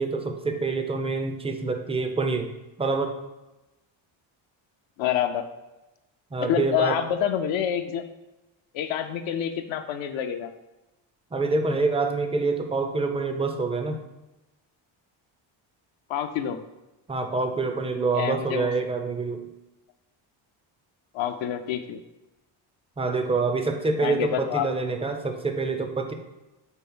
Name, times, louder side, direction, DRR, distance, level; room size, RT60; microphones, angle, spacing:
voice 1, 0.0-2.5 2.8-3.1 6.3-7.0 11.3-14.0 17.1-19.5 23.0-26.1, right 3 dB, 15° right, 6 dB, 0.4 m, -26 dB
voice 2, 5.0-5.4 6.4-8.0 8.7-10.5 16.1-16.6 18.1-18.7 21.1-22.0 24.0-24.7, left 10 dB, 70° left, 7 dB, 0.6 m, -27 dB
4.5 x 4.3 x 5.4 m, 1.0 s
cardioid pair, 150°, 48 cm